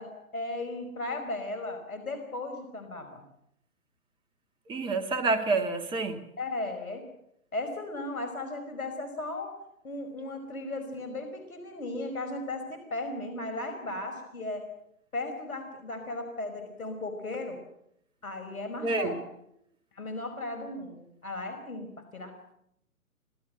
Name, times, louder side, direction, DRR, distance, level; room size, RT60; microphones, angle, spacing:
voice 1, 0.0-3.2 6.4-7.1 7.5-9.5 9.8-14.6 15.1-17.6 18.2-19.1 19.9-22.5, left 2 dB, 75° left, 7 dB, 5.2 m, -36 dB
voice 2, 4.7-6.2 18.8-19.1, right 3 dB, 10° right, 8 dB, 1.7 m, -28 dB
25.5 x 18.0 x 7.7 m, 0.77 s
figure-of-eight pair, 140°, 43 cm